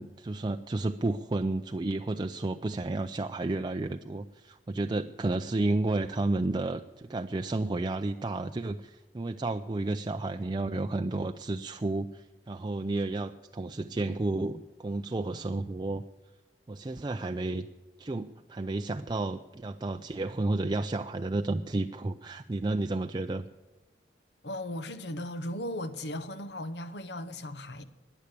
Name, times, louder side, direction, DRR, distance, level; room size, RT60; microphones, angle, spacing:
voice 1, 0.0-16.0 16.7-17.7 18.0-23.5, right 2 dB, 25° right, 0.4 m, -31 dB
voice 2, 24.4-27.8, left 1 dB, 75° left, 1.1 m, -37 dB
15.0 x 10.0 x 8.3 m
head